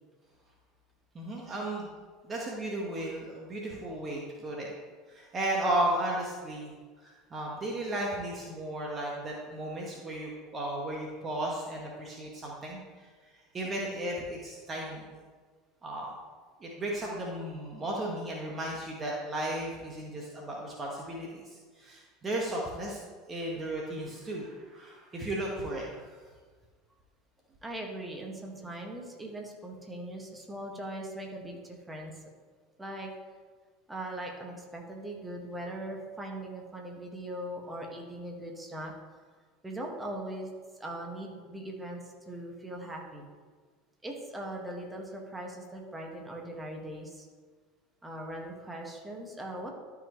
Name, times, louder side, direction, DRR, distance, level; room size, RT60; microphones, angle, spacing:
voice 1, 1.1-1.9 2.2-4.7 5.1-6.7 7.0-12.8 13.5-15.0 15.8-16.1 16.6-23.0 23.3-26.1, right 1 dB, 30° right, -2 dB, 1.5 m, -34 dB
voice 2, 27.6-32.3 32.8-33.1 33.9-38.9 39.6-40.5 40.8-43.3 44.0-47.3 48.0-49.7, right 1 dB, 10° right, 0 dB, 1.8 m, -40 dB
12.5 x 5.3 x 3.2 m, 1.5 s
hypercardioid pair, 75°, 0 cm